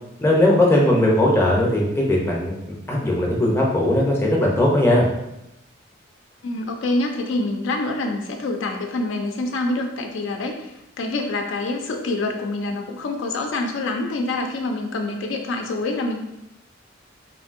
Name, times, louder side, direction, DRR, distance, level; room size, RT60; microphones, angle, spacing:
voice 1, 0.2-5.0, left 1 dB, 15° left, -3 dB, 0.5 m, -19 dB
voice 2, 6.4-16.2, left 2 dB, 70° left, 3 dB, 0.4 m, -26 dB
3.0 x 2.6 x 2.5 m, 0.86 s
head